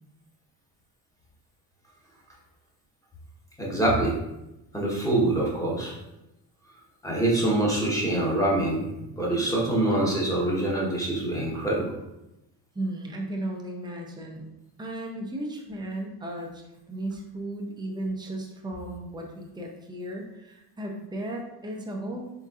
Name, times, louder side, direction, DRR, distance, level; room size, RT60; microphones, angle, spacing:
voice 1, 3.6-4.2 4.7-5.9 7.0-8.9 9.2-11.9, right 1 dB, 5° left, -4 dB, 1.0 m, -25 dB
voice 2, 12.7-14.5 14.8-22.3, right 1 dB, 10° right, 0 dB, 0.5 m, -35 dB
4.2 x 3.6 x 2.4 m, 0.91 s
cardioid pair, 125°, 47 cm